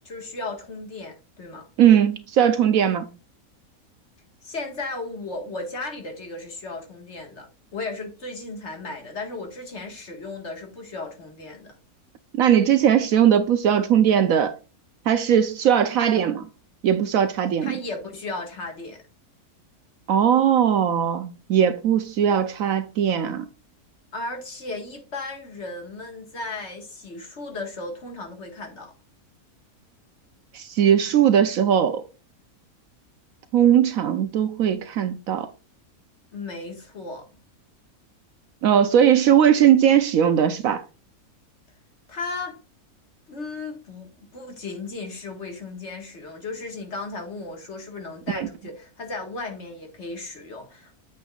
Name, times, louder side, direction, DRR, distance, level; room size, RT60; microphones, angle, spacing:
voice 1, 0.1-1.7 4.4-11.7 17.6-19.0 24.1-28.9 36.3-37.3 42.1-42.6 43.3-50.9, left 3 dB, 50° left, 2.0 m, -35 dB
voice 2, 1.8-3.1 12.3-14.5 15.1-16.5 16.8-17.7 20.1-23.5 30.5-32.0 33.5-35.5 38.6-40.8 48.3-48.5, right 9 dB, 70° right, 1.1 m, -19 dB
9.0 x 7.0 x 2.4 m
omnidirectional pair, 1.6 m